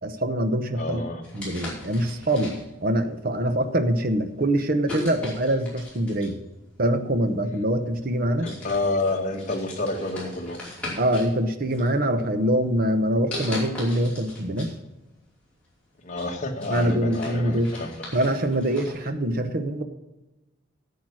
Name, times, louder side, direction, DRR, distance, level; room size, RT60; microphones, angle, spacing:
voice 1, 0.0-1.0 1.3-6.4 6.8-8.5 11.0-14.7 16.7-17.7 18.1-19.8, right 1 dB, 45° right, 8 dB, 0.9 m, -24 dB
voice 2, 0.8-1.2 8.4-10.6 16.0-18.0, left 2 dB, 35° left, 2 dB, 1.7 m, -29 dB
sound 1, 1.2-2.9 3.6-3.8 4.9-6.4 7.5-7.6 8.1-8.2 8.4-11.3 11.7-12.4 13.3-14.7 15.1-15.2 15.7-19.0, left 2 dB, 5° left, 4.9 m, -38 dB
10.5 x 8.2 x 6.2 m, 1.0 s
head